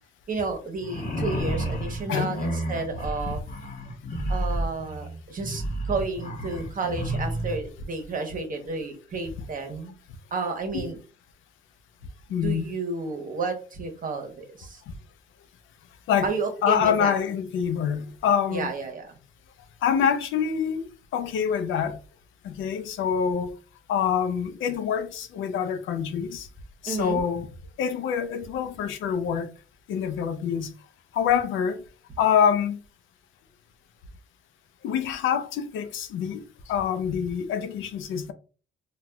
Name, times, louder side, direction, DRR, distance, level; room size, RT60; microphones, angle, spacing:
voice 1, 0.3-3.4 4.3-9.9 10.3-11.0 12.4-14.8 16.2-17.2 18.5-19.2 26.8-27.2, right 4 dB, 45° right, 1.0 m, -31 dB
sound 1, 0.8-7.6, right 1 dB, 45° left, 0.9 m, -31 dB
voice 2, 12.3-12.7 16.1-16.3 16.6-18.7 19.8-20.8 21.1-22.0 22.4-23.5 23.9-26.5 26.8-27.5 27.8-29.5 29.9-30.7 31.1-31.8 32.2-32.8 34.8-36.4 36.7-38.3, left 8 dB, 80° left, 0.5 m, -25 dB
4.1 x 2.3 x 2.3 m
cardioid pair, 90°, 20 cm